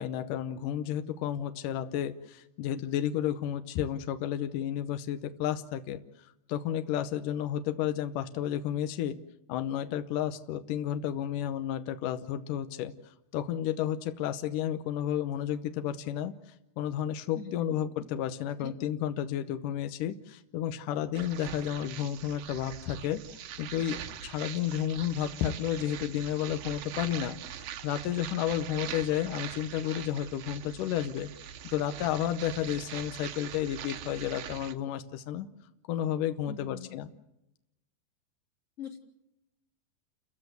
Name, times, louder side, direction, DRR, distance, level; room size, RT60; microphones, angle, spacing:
voice 1, 0.0-6.0 6.5-9.2 9.5-12.9 13.3-16.3 16.8-23.2 23.6-35.5 35.9-37.1, left 10 dB, 70° left, 8 dB, 2.1 m, -32 dB
sound 1, 21.1-34.7, right 10 dB, 70° right, 2.7 m, -42 dB
voice 2, 36.5-37.0 38.8-39.0, left 8 dB, 30° left, 4 dB, 1.6 m, -42 dB
30.0 x 15.5 x 7.9 m, 0.91 s
omnidirectional pair, 4.7 m